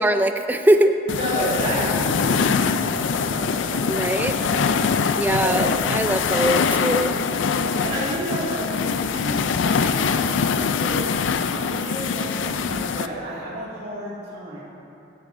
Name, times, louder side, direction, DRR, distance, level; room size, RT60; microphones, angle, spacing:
voice 1, 0.0-0.9 3.9-4.4 5.2-7.2, right 1 dB, 10° right, 7 dB, 0.4 m, -21 dB
sound 1, 1.1-13.1, left 6 dB, 85° left, 0.4 m, -23 dB
voice 2, 1.1-4.7 5.4-5.6 6.3-6.8 7.6-14.6, equal, 55° right, -11 dB, 2.3 m, -31 dB
15.0 x 12.0 x 2.6 m, 2.8 s
head